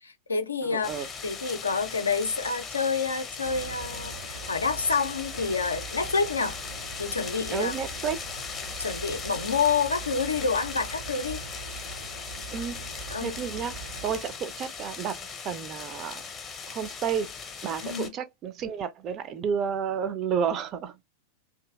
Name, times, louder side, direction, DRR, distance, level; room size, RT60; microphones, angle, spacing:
voice 1, 0.0-0.9 1.2-6.6 7.0-7.7 8.8-11.4 13.1-13.4 17.8-18.1, left 5 dB, 75° left, 0.4 m, -28 dB
voice 2, 0.6-1.1 7.5-8.2 12.5-16.2 16.7-17.3 17.6-21.0, right 7 dB, 35° right, 0.4 m, -31 dB
sound 1, 0.8-18.1, left 5 dB, 25° left, 0.6 m, -39 dB
sound 2, 3.4-14.2, right 5 dB, 75° right, 0.7 m, -43 dB
2.7 x 2.6 x 2.2 m
figure-of-eight pair, 90°, 0 cm